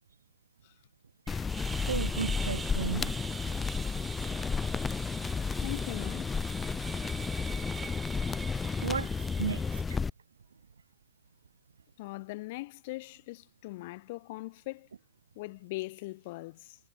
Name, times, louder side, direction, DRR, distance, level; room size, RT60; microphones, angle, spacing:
sound 1, 1.3-10.1, left 5 dB, 15° left, 7.2 m, -32 dB
sound 2, 1.5-9.8, right 5 dB, 15° right, 7.5 m, -44 dB
voice 1, 1.9-3.2 8.8-9.1 9.4-9.6 9.9-10.0, right 6 dB, 90° right, 3.9 m, -34 dB
voice 2, 5.6-6.3 12.0-14.9 15.4-16.8, left 21 dB, 55° left, 7.9 m, -40 dB
hypercardioid pair, 110°, 0 cm